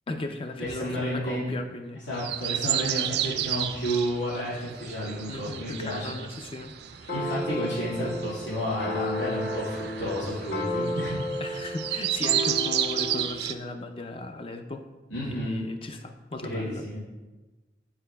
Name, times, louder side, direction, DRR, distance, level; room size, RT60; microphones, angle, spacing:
voice 1, 0.1-2.0 2.7-3.0 5.3-7.2 11.4-14.8 15.3-16.8, left 2 dB, 30° left, 6 dB, 0.4 m, -37 dB
voice 2, 0.6-1.5 2.1-6.2 7.1-11.2 15.1-15.6 16.4-17.0, equal, 85° left, -10 dB, 2.0 m, -31 dB
sound 1, 2.1-13.5, right 11 dB, 60° right, 0.3 m, -32 dB
sound 2, 7.1-13.3, left 1 dB, 55° left, 1.0 m, -33 dB
10.0 x 4.7 x 2.2 m, 1.2 s
head